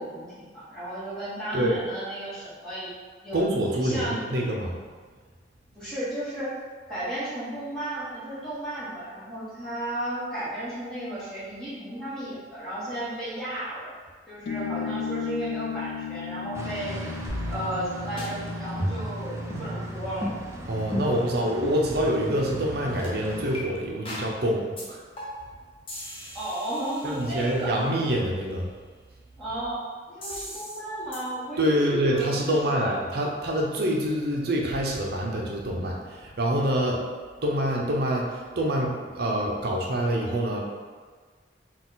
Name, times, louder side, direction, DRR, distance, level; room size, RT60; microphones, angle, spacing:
voice 1, 0.0-2.9 3.2-3.4 3.7-4.2 5.7-6.5 6.9-13.9 14.3-17.1 17.5-20.3 26.3-27.8 29.4-29.8 30.1-33.0, right 1 dB, 5° left, -12 dB, 1.5 m, -34 dB
voice 2, 3.3-4.8 20.7-25.0 27.0-28.7 31.6-37.0 37.4-40.6, right 1 dB, 60° right, -1 dB, 0.7 m, -26 dB
sound 1, 14.5-21.4, left 7 dB, 65° left, 0.3 m, -37 dB
sound 2, 16.5-23.6, equal, 15° right, 0.4 m, -37 dB
sound 3, 17.3-17.9 18.2-18.3 18.8-19.2 19.5-19.7 20.2-20.4 20.9-21.2 21.6-21.8 22.3-22.5 23.0-23.1 23.5-23.6 24.1-24.3 24.8-24.9 25.2-25.5 25.9-27.7 30.2-30.8 31.1-31.2, equal, 30° left, 0.9 m, -34 dB
4.1 x 2.4 x 3.9 m, 1.5 s
head